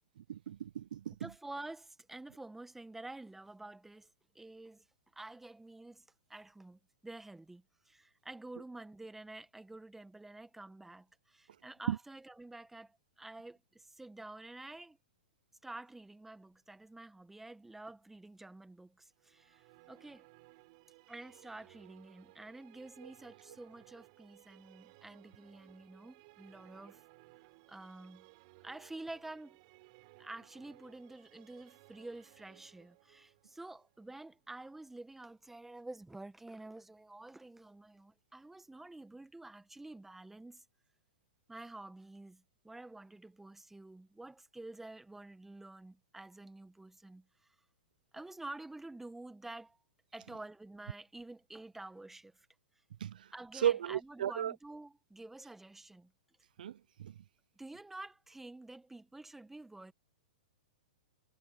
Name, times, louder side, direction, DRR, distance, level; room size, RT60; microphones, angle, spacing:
voice 1, 0.3-1.3 11.9-12.0 53.0-53.3 53.5-54.5 56.6-57.1, right 10 dB, 70° right, 0.6 m, -34 dB
voice 2, 1.2-4.1 4.3-4.8 5.1-15.0 15.6-20.3 21.1-27.0 27.7-28.3 28.6-29.6 30.2-40.6 41.5-47.2 48.1-49.8 50.1-52.5 53.3-56.1 57.6-59.9, right 2 dB, 5° right, 1.5 m, -49 dB
sound 1, 19.2-35.2, right 27 dB, 50° right, 6.8 m, -62 dB
hypercardioid pair, 120°, 5 cm